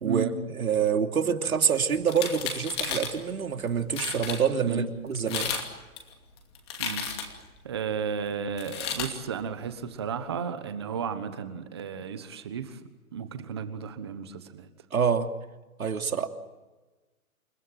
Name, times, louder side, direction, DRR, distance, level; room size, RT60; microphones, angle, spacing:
voice 1, 0.0-5.5 14.9-15.3 15.8-16.3, right 7 dB, 70° right, 5 dB, 3.0 m, -26 dB
sound 1, 2.0-3.1 3.7-3.8 3.9-4.4 5.1-5.7 6.0-7.4 8.6-9.1, left 6 dB, 20° left, 2.5 m, -33 dB
voice 2, 7.6-12.8 13.1-14.7, right 7 dB, 20° right, 10 dB, 1.3 m, -33 dB
29.0 x 17.0 x 9.2 m, 1.2 s
hypercardioid pair, 175°, 43 cm